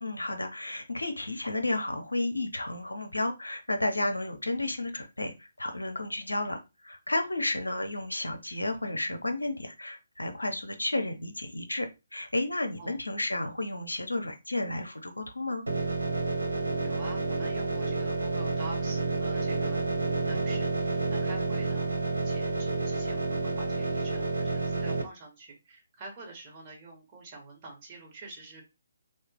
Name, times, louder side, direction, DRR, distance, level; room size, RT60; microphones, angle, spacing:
voice 1, 0.0-15.6, left 2 dB, 80° left, 7 dB, 0.8 m, -32 dB
sound 1, 15.7-25.0, right 3 dB, 80° right, 0.9 m, -30 dB
voice 2, 16.8-19.8 20.2-21.9 22.2-28.6, right 3 dB, 25° right, -1 dB, 1.5 m, -46 dB
3.2 x 2.5 x 3.5 m, 0.26 s
figure-of-eight pair, 140°, 0 cm